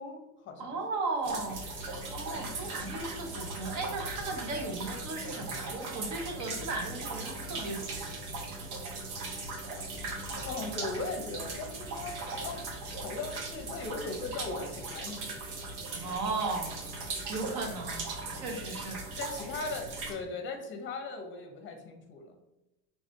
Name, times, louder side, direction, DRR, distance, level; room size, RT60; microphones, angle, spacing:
voice 1, 0.0-0.7 10.4-12.6 13.0-15.4 19.2-22.4, left 3 dB, 25° left, 5 dB, 0.8 m, -38 dB
voice 2, 0.6-8.2 15.9-16.8 17.3-19.2, right 3 dB, 40° right, 3 dB, 1.0 m, -36 dB
sound 1, 1.2-20.1, right 3 dB, 85° right, 1.0 m, -39 dB
4.8 x 3.6 x 2.7 m, 0.97 s
supercardioid pair, 135°, 44 cm